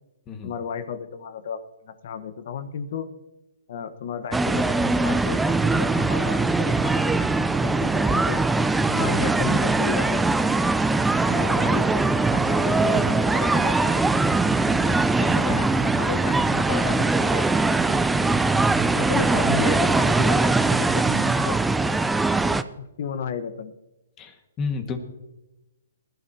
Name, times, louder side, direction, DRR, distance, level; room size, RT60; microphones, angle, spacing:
voice 1, 0.4-3.1 3.7-8.4 8.9-10.4 11.2-14.0 14.8-18.1 18.9-21.6 22.8-23.7, left 7 dB, 60° left, 11 dB, 1.2 m, -33 dB
sound 1, 4.3-22.6, right 3 dB, 5° right, 0.4 m, -21 dB
voice 2, 24.2-25.0, left 5 dB, 25° left, 6 dB, 1.7 m, -31 dB
19.5 x 12.0 x 2.8 m, 0.96 s
hypercardioid pair, 140°, 0 cm